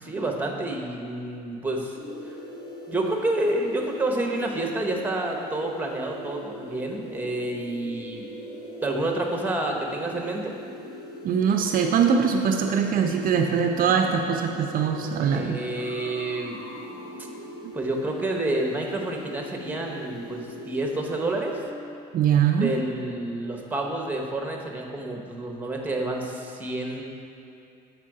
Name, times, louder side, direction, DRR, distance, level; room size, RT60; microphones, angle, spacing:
voice 1, 0.0-2.0 2.9-8.3 8.8-10.5 15.2-16.6 17.7-21.6 22.6-27.0, right 2 dB, 10° right, 1 dB, 0.9 m, -29 dB
sound 1, 2.0-21.6, equal, 65° left, 1.4 m, -40 dB
voice 2, 11.2-15.6 17.6-17.7 22.1-22.7, right 7 dB, 55° right, 4 dB, 0.5 m, -22 dB
7.4 x 4.6 x 4.8 m, 2.7 s
cardioid pair, 110°, 17 cm